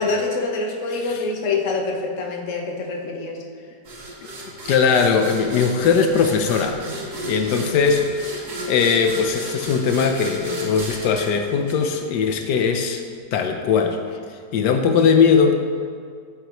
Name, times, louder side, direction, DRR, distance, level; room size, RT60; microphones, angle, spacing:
voice 1, 0.0-3.4, left 3 dB, 50° left, 1 dB, 1.4 m, -25 dB
sound 1, 3.9-12.4, right 1 dB, 70° right, 2.1 m, -34 dB
voice 2, 4.6-6.8 7.2-8.3 8.6-13.0 13.3-14.0 14.5-15.5, left 6 dB, 85° left, 5 dB, 1.3 m, -19 dB
15.0 x 8.1 x 3.0 m, 2.2 s
omnidirectional pair, 1.8 m